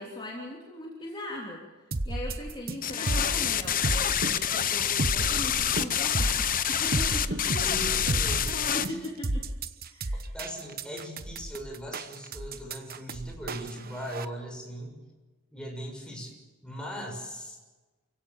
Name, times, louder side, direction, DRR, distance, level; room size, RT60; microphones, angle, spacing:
voice 1, 0.0-1.6 2.1-7.4 8.9-9.5 9.9-10.2, left 1 dB, 25° left, -3 dB, 3.3 m, -40 dB
sound 1, 1.9-14.2, right 2 dB, 45° right, 1.1 m, -32 dB
sound 2, 2.8-8.9, left 9 dB, 40° left, 0.9 m, -27 dB
voice 2, 7.5-9.0 10.1-15.0 15.5-16.3 16.6-17.6, equal, 5° left, 0 dB, 6.6 m, -39 dB
29.0 x 17.0 x 7.4 m, 1.2 s
head